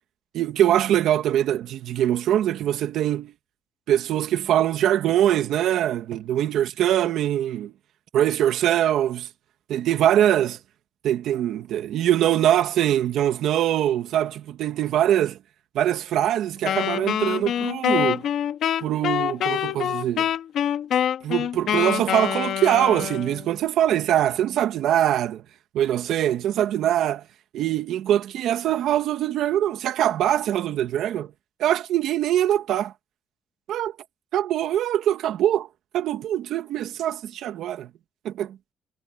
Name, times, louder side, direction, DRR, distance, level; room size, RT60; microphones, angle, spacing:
voice 1, 0.3-3.3 3.9-7.7 8.1-9.3 9.7-10.6 11.0-15.4 15.7-18.3 18.8-20.3 21.2-25.4 25.7-27.2 27.5-31.3 31.6-32.9 33.7-33.9 34.3-35.7 35.9-37.9 38.2-38.6, right 11 dB, 65° right, 1.9 m, -23 dB
Wind instrument woodwind instrument, 16.6-23.5, left 10 dB, 55° left, 2.2 m, -25 dB
cardioid pair, 170°, 0 cm